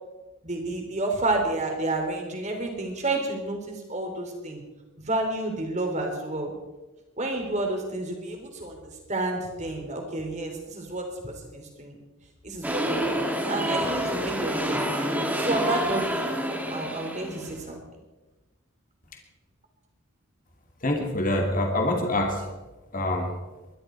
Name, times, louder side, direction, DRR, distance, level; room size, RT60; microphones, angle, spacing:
voice 1, 0.4-4.6 5.0-6.5 7.2-12.0 12.4-16.0 16.7-17.8, right 2 dB, 30° right, 2 dB, 3.4 m, -30 dB
sound 1, 12.6-17.6, equal, 5° right, 2.0 m, -28 dB
voice 2, 20.8-22.5 22.9-23.3, left 1 dB, 40° left, 2 dB, 2.5 m, -25 dB
22.0 x 12.5 x 4.6 m, 1.1 s
head